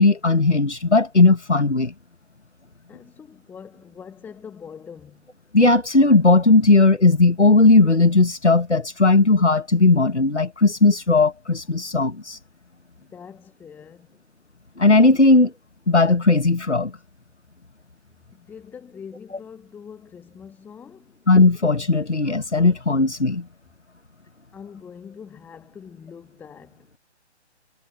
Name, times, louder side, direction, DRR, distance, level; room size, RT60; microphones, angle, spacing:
voice 1, 0.0-1.9 5.5-12.4 14.8-15.5 15.9-16.9 21.3-23.4, left 3 dB, 85° left, 1.5 m, -17 dB
voice 2, 2.9-5.3 13.0-14.2 18.3-21.2 24.5-27.0, left 7 dB, 5° left, 2.0 m, -43 dB
figure-of-eight pair, 140°, 34 cm